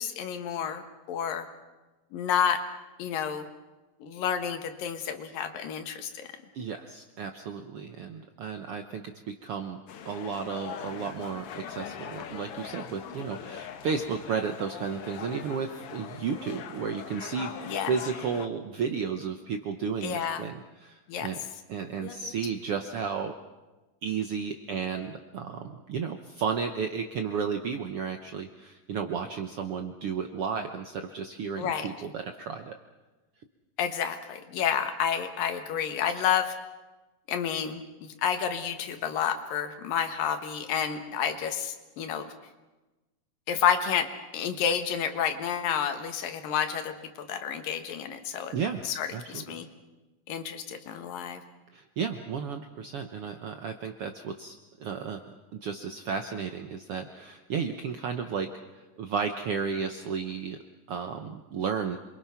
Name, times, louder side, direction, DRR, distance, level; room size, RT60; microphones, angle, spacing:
voice 1, 0.0-1.5 2.1-2.6 3.0-3.5 4.0-6.3 17.7-17.9 20.0-20.4 21.1-21.3 22.0-22.2 31.6-31.9 33.8-36.5 37.3-42.3 43.5-44.1 44.3-46.9 47.3-48.5 48.8-49.7 50.3-51.4, left 8 dB, 80° left, 7 dB, 3.1 m, -30 dB
voice 2, 6.5-9.8 10.0-21.4 21.7-23.3 24.0-32.7 48.5-48.9 49.1-49.6 51.7-55.2 55.5-58.5 58.8-60.6 60.9-62.0, right 6 dB, 75° right, 6 dB, 1.3 m, -33 dB
sound 1, 9.9-18.5, left 8 dB, 65° left, 1.5 m, -41 dB
27.0 x 23.0 x 5.8 m, 1.1 s
omnidirectional pair, 3.9 m